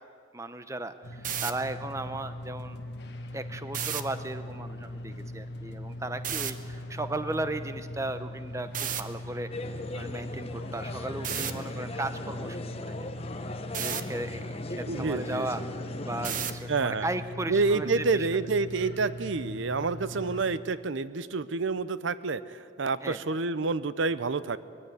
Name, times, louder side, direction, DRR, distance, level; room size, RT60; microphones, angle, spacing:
voice 1, 0.3-2.8 3.3-13.1 13.8-15.6 16.0-18.3 23.0-23.2, right 2 dB, 15° right, 10 dB, 0.7 m, -36 dB
sound 1, 1.0-20.4, left 1 dB, 55° left, 1.6 m, -40 dB
sound 2, 1.1-1.5 3.7-4.0 6.2-6.5 8.7-9.0 11.2-11.5 13.7-14.0 16.2-16.6, right 9 dB, 40° right, 0.9 m, -31 dB
sound 3, 9.5-16.6, left 2 dB, 30° left, 0.9 m, -39 dB
voice 2, 14.9-15.5 16.7-17.1 17.5-24.6, right 4 dB, 70° right, 15 dB, 0.6 m, -28 dB
21.5 x 15.5 x 9.6 m, 2.2 s
head